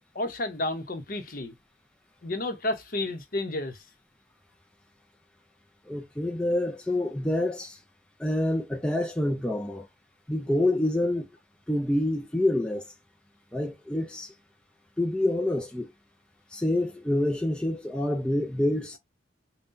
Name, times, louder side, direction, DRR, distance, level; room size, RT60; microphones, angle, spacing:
voice 1, 0.0-1.5 2.2-3.8, left 1 dB, 50° left, 0.8 m, -31 dB
voice 2, 5.9-7.8 8.2-9.9 10.3-11.3 11.7-12.9 13.5-14.3 15.0-15.9 16.5-19.0, left 1 dB, 5° left, 0.4 m, -27 dB
5.5 x 2.2 x 2.6 m
head